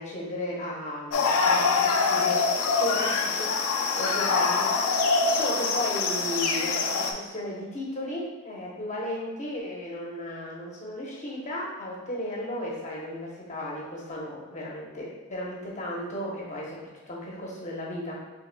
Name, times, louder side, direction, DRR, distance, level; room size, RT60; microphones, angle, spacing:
voice 1, 0.0-5.0 5.3-18.2, left 1 dB, 30° left, -3 dB, 0.8 m, -35 dB
sound 1, 1.1-7.1, left 4 dB, 75° left, 0.5 m, -24 dB
5.8 x 3.2 x 2.2 m, 1.2 s
head